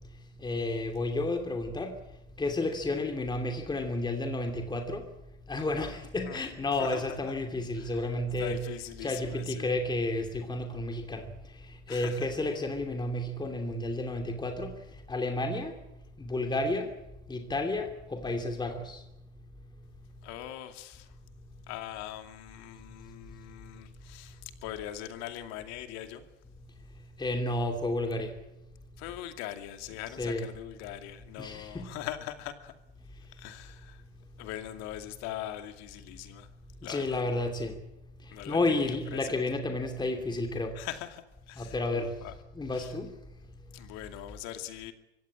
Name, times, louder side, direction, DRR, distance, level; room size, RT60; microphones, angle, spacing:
voice 1, 0.4-1.9 2.4-5.1 5.5-8.6 9.0-11.3 11.9-14.7 15.1-15.7 16.2-16.9 17.3-19.0 27.2-28.3 30.2-30.5 31.4-31.9 36.8-37.8 38.5-40.7 41.6-42.1 42.5-43.1, left 2 dB, 15° left, 5 dB, 2.8 m, -31 dB
voice 2, 6.8-7.3 7.8-8.0 8.4-9.7 11.9-12.3 20.2-21.1 21.7-26.3 29.0-32.7 33.3-34.0 34.4-36.5 36.8-37.4 38.3-39.4 40.7-42.3 42.7-42.9 43.7-44.9, left 12 dB, 50° left, 8 dB, 2.5 m, -41 dB
24.5 x 16.5 x 8.8 m, 0.91 s
hypercardioid pair, 90°, 34 cm